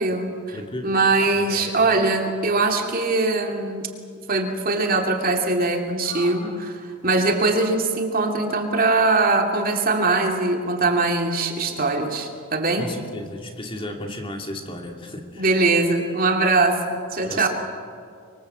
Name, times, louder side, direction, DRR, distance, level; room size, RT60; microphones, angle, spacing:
voice 1, 0.0-3.8 4.3-12.8 15.4-17.5, right 3 dB, 40° right, 3 dB, 2.7 m, -22 dB
voice 2, 0.5-0.9 1.2-1.9 6.0-6.6 8.2-8.6 12.8-15.5 17.2-17.5, left 1 dB, 25° left, 2 dB, 2.6 m, -35 dB
25.5 x 23.0 x 8.1 m, 2.2 s
head